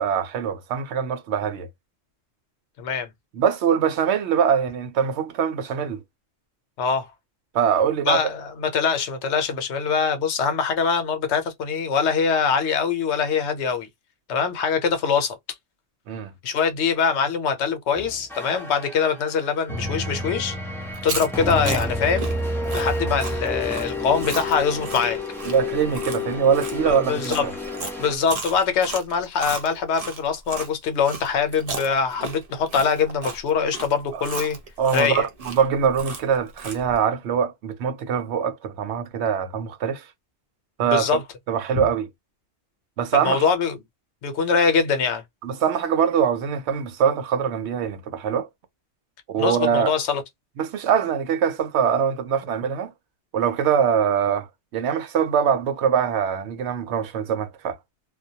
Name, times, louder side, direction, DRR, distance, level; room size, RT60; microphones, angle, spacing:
voice 1, 0.0-1.7 3.3-6.0 7.5-8.2 16.1-16.3 25.5-27.5 34.1-34.2 34.8-40.0 40.8-41.2 41.5-42.1 43.0-43.5 45.4-48.5 49.3-49.9 50.6-52.9 53.3-54.5 54.7-57.8, right 7 dB, 80° right, 0.9 m, -23 dB
voice 2, 2.8-3.1 6.8-7.1 8.1-13.9 14.3-15.4 16.4-20.6 21.0-22.3 22.7-25.2 26.8-27.5 28.0-34.6 34.9-35.3 40.8-41.2 41.8-41.9 43.2-43.8 44.2-45.2 49.4-50.2, left 6 dB, 80° left, 0.9 m, -23 dB
sound 1, 17.9-28.2, left 2 dB, 5° left, 0.4 m, -30 dB
Chewing mastication, 20.9-30.7 31.0-37.0, right 3 dB, 45° right, 0.6 m, -35 dB
2.2 x 2.1 x 2.7 m
omnidirectional pair, 1.1 m